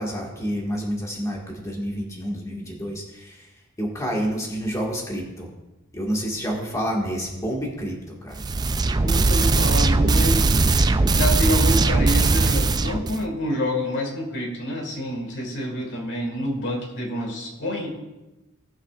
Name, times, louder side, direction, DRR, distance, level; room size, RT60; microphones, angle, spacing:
voice 1, 0.0-3.5 3.8-5.5 5.9-8.4, equal, 15° left, -2 dB, 1.7 m, -29 dB
sound 1, 8.3-13.2, right 3 dB, 20° right, 0.3 m, -19 dB
voice 2, 9.0-10.5 11.1-17.9, equal, 60° left, 1 dB, 1.9 m, -27 dB
18.5 x 7.5 x 2.4 m, 1.1 s
head